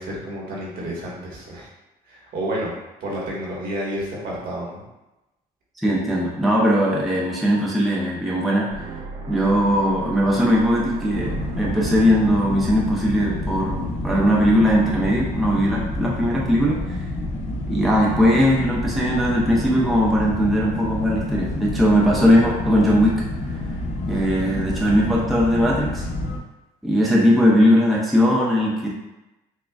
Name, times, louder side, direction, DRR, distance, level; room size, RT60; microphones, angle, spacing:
voice 1, 0.0-1.7 2.1-4.8, right 1 dB, 60° right, -4 dB, 1.4 m, -30 dB
voice 2, 5.8-8.7 9.3-17.0 17.7-23.2 24.1-26.1 26.8-28.9, equal, ahead, -5 dB, 0.7 m, -19 dB
sound 1, 8.7-14.7, right 3 dB, 80° right, 0.7 m, -37 dB
sound 2, 11.1-26.4, left 1 dB, 45° left, 0.7 m, -29 dB
6.2 x 2.3 x 2.3 m, 0.99 s
cardioid pair, 110°, 17 cm